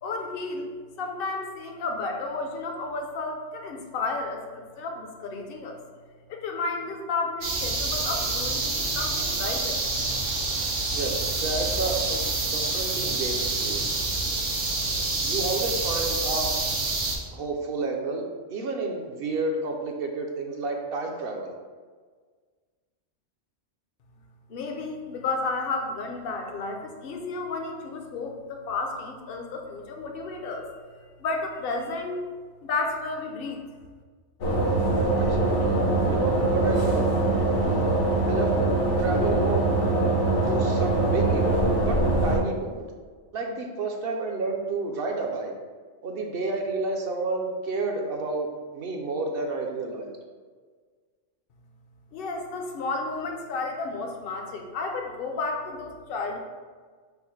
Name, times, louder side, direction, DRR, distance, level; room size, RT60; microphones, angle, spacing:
voice 1, 0.0-0.7 1.0-5.8 6.3-9.8 24.5-30.7 31.2-32.3 32.6-33.6 52.1-56.4, left 3 dB, 60° left, 3 dB, 0.7 m, -32 dB
sound 1, 7.4-17.2, right 3 dB, 85° right, 1.2 m, -27 dB
voice 2, 10.9-13.9 15.2-16.6 17.3-21.5 35.2-35.8 36.1-37.1 38.2-38.7 39.0-39.7 40.4-42.9 43.3-45.5 46.0-48.5 48.7-50.1, right 3 dB, 65° right, 2 dB, 0.7 m, -30 dB
sound 2, 34.4-42.4, right 2 dB, 75° left, 1.1 m, -23 dB
5.4 x 2.0 x 4.4 m, 1.5 s
omnidirectional pair, 1.2 m